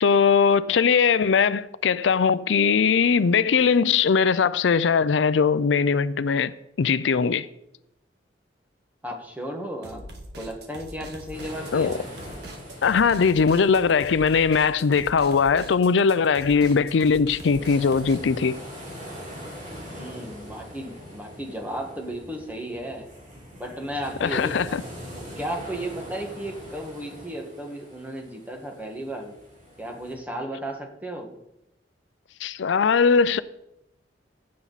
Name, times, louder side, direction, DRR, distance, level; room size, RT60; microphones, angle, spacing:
voice 1, 0.0-6.5 6.8-7.5 11.7-12.0 12.8-18.6 24.2-24.8 32.4-33.4, left 5 dB, 85° left, 0.4 m, -20 dB
voice 2, 9.0-10.1 10.4-12.1 19.9-23.1 23.6-24.8 25.2-29.3 29.8-31.4, right 1 dB, 10° right, 1.6 m, -34 dB
sound 1, 9.8-18.2, right 1 dB, 65° right, 1.7 m, -42 dB
sound 2, 11.3-30.1, equal, 45° right, 3.8 m, -43 dB
15.5 x 7.5 x 4.1 m
head